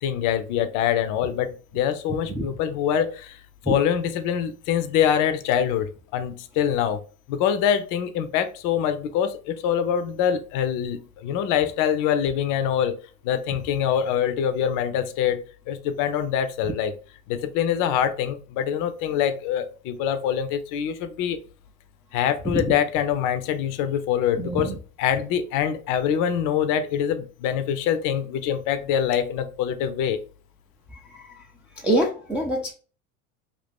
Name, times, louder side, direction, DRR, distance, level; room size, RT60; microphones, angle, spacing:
voice 1, 0.0-3.4 3.7-7.0 7.3-13.0 13.2-16.9 17.3-21.4 22.1-30.2, left 9 dB, 50° left, 10 dB, 0.5 m, -24 dB
voice 2, 24.4-24.7 31.8-32.7, right 1 dB, 5° right, -2 dB, 0.4 m, -24 dB
2.6 x 2.4 x 3.5 m, 0.39 s
hypercardioid pair, 90°, 42 cm